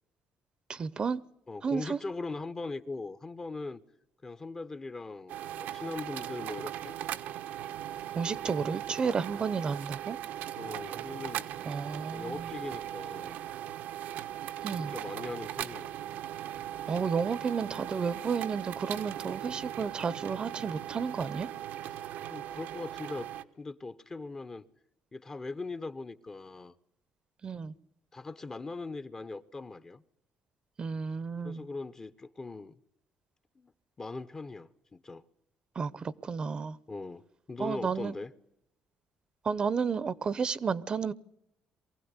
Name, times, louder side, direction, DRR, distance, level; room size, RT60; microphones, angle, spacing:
voice 1, 0.7-1.2 1.6-2.0 8.1-10.2 11.6-12.5 14.6-14.9 16.9-21.5 27.4-27.7 30.8-31.7 35.7-36.8 37.6-38.1 39.4-41.1, right 5 dB, 30° right, 0.8 m, -32 dB
voice 2, 1.5-3.8 4.2-6.9 10.6-11.5 12.1-13.4 14.8-15.9 21.9-23.3 23.6-24.6 25.1-26.7 28.1-30.0 31.4-32.8 33.6-33.7 34.0-35.2 36.9-38.3, left 3 dB, 20° left, 0.9 m, -40 dB
sound 1, 5.3-23.4, right 11 dB, 85° right, 1.1 m, -39 dB
23.5 x 16.0 x 9.7 m
cardioid pair, 140°, 3 cm